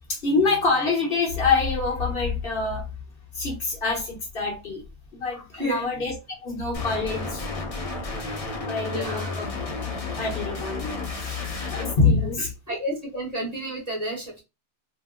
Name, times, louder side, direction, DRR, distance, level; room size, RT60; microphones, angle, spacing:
voice 1, 0.1-2.9 3.3-4.8 5.1-6.2 6.4-7.5 8.6-9.5 10.2-11.4 11.7-12.8, left 4 dB, 55° left, 1.1 m, -25 dB
voice 2, 5.3-5.9 8.2-8.5 8.9-9.4 12.7-14.4, right 1 dB, 35° right, 1.0 m, -31 dB
sound 1, 6.7-11.9, left 3 dB, 35° left, 0.7 m, -32 dB
2.8 x 2.0 x 3.6 m
omnidirectional pair, 1.2 m